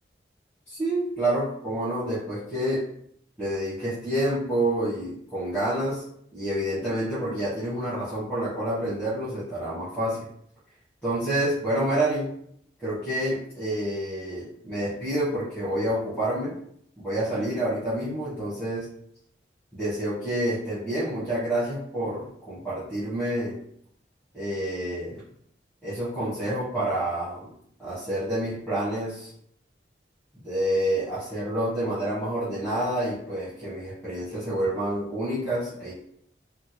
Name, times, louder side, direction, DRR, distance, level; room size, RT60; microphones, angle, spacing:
voice 1, 0.7-2.8 3.4-6.0 6.3-10.2 11.0-12.2 12.8-16.6 17.0-18.8 19.7-23.6 24.3-25.2 25.8-27.5 27.8-29.3 30.3-35.9, right 1 dB, 10° left, -13 dB, 1.3 m, -28 dB
3.7 x 3.0 x 2.2 m, 0.67 s
head